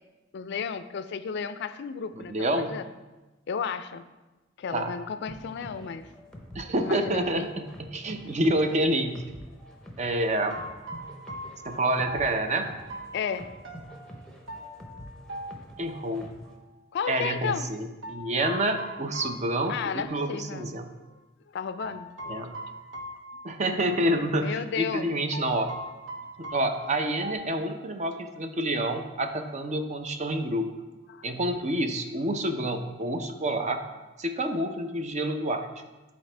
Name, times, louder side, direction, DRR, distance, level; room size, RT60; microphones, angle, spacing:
voice 1, 0.3-2.9 3.5-4.0 4.6-6.1 6.8-7.5 13.1-13.5 16.9-17.7 19.7-20.7 21.5-22.1 24.4-25.1 31.1-31.3, left 6 dB, 60° left, 12 dB, 0.4 m, -33 dB
voice 2, 2.2-2.7 4.7-4.9 6.5-9.2 10.0-10.6 11.6-12.7 15.8-16.4 17.1-20.9 22.3-22.5 23.4-25.7 26.4-30.7 31.2-33.8 34.2-35.7, right 1 dB, 40° right, 6 dB, 0.6 m, -28 dB
sound 1, 5.3-16.6, equal, 5° left, 0.8 m, -47 dB
sound 2, 10.4-16.2 18.0-20.3 20.6-20.7 21.8-24.1 24.3-24.5 25.3-27.3, equal, 75° right, 1.0 m, -41 dB
10.5 x 4.1 x 3.3 m, 1.1 s
head